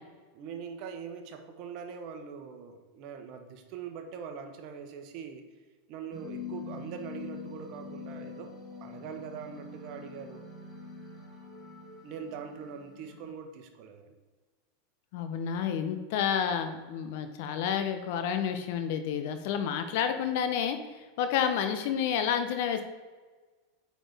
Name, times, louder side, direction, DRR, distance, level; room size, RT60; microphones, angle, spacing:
voice 1, 0.3-5.4 5.9-8.5 8.8-10.4 12.0-14.1, right 6 dB, 50° right, 5 dB, 1.0 m, -42 dB
sound 1, 6.1-13.3, left 4 dB, 10° left, 2.1 m, -44 dB
voice 2, 15.1-22.8, left 8 dB, 60° left, 8 dB, 0.8 m, -30 dB
8.8 x 4.1 x 3.5 m, 1.4 s
hypercardioid pair, 95°, 0 cm